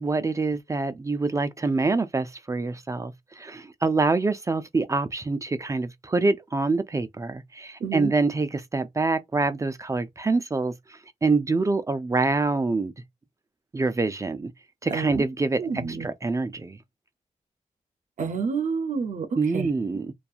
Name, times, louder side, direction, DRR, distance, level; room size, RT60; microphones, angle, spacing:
voice 1, 0.0-12.9 13.7-14.5 14.8-16.8 19.4-20.1, right 3 dB, 25° right, 0.4 m, -26 dB
voice 2, 7.8-8.1 14.9-15.2 15.6-16.1 18.2-19.3 19.5-19.7, right 5 dB, 65° right, 0.6 m, -28 dB
2.6 x 2.3 x 2.4 m
cardioid pair, 90°, 13 cm